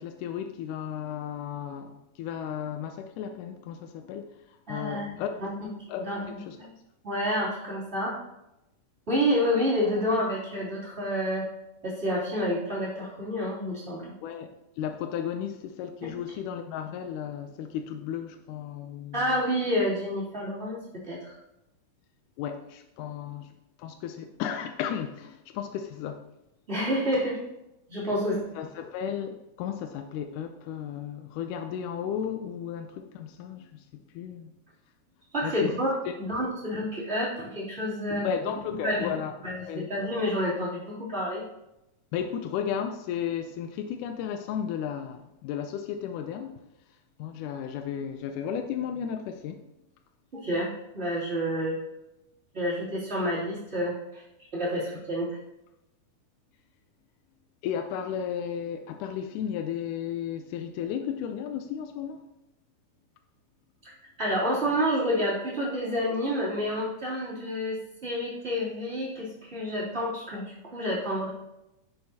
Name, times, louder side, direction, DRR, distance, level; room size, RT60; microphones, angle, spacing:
voice 1, 0.0-5.4 5.9-6.6 14.2-19.3 22.4-23.5 23.8-26.2 28.6-33.9 34.1-34.5 35.4-35.7 38.2-39.4 39.7-39.9 42.1-46.7 47.2-49.6 57.6-62.2, left 8 dB, 80° left, 6 dB, 2.0 m, -34 dB
voice 2, 4.7-5.5 6.0-6.7 7.0-8.1 9.1-11.4 11.8-14.1 16.0-16.1 19.1-21.4 26.7-27.4 27.9-28.4 35.3-38.3 38.8-39.1 39.4-41.4 50.3-51.8 52.5-54.2 54.5-55.4 64.2-71.3, equal, 20° right, -8 dB, 2.9 m, -29 dB
10.0 x 6.7 x 2.8 m, 0.90 s
omnidirectional pair, 3.7 m